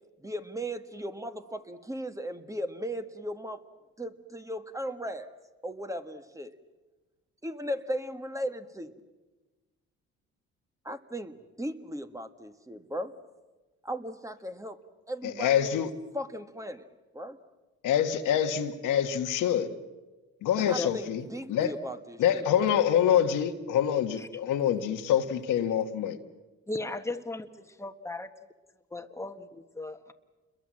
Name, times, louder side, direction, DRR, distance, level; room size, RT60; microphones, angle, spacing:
voice 1, 0.2-3.6 4.0-5.3 5.6-6.5 7.4-8.9 10.8-13.1 13.8-14.8 15.1-15.9 16.1-16.8 17.1-17.4 20.6-22.7, equal, 10° right, 1.5 m, -37 dB
voice 2, 15.2-15.9 17.8-19.8 20.4-21.2 21.5-21.7 22.2-26.2, left 9 dB, 90° left, 1.7 m, -26 dB
voice 3, 26.7-28.3 28.9-30.1, left 2 dB, 10° left, 1.5 m, -37 dB
29.0 x 22.0 x 7.6 m
cardioid pair, 90°, 30 cm